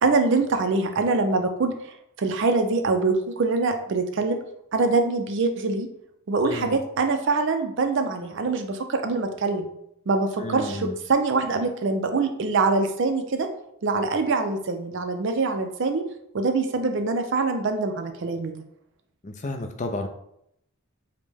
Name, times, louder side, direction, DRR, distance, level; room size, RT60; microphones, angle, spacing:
voice 1, 0.0-1.7 2.2-4.4 4.7-5.9 6.3-9.7 10.1-13.5 13.8-16.0 16.3-18.5, right 3 dB, 55° right, 6 dB, 0.4 m, -24 dB
voice 2, 6.4-6.8 10.4-10.9 19.2-20.1, left 2 dB, 35° left, 5 dB, 0.4 m, -32 dB
5.1 x 2.2 x 3.4 m, 0.76 s
head